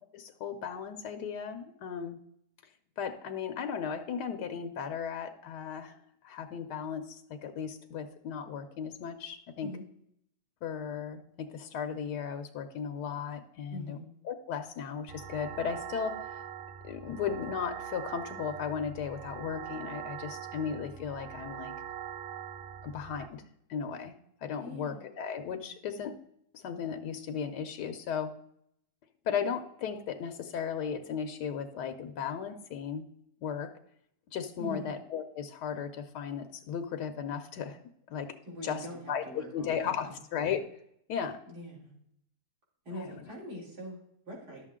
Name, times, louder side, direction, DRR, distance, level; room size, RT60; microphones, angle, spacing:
voice 1, 0.1-2.2 3.0-6.0 6.2-9.7 10.6-14.0 14.2-16.4 16.8-21.7 22.8-23.4 23.7-24.1 24.4-26.1 26.5-28.3 29.2-33.0 33.4-33.7 34.3-37.8 38.1-38.3 38.6-40.6 41.1-41.4 42.9-43.1, left 7 dB, 90° left, 7 dB, 1.4 m, -36 dB
voice 2, 13.7-14.1 24.6-25.0 34.6-34.9 38.5-40.2 41.5-41.9 42.9-44.7, left 1 dB, 75° right, -4 dB, 3.9 m, -43 dB
sound 1, 15.1-23.3, right 9 dB, 60° right, 0.6 m, -42 dB
11.0 x 7.3 x 3.6 m, 0.72 s
omnidirectional pair, 1.7 m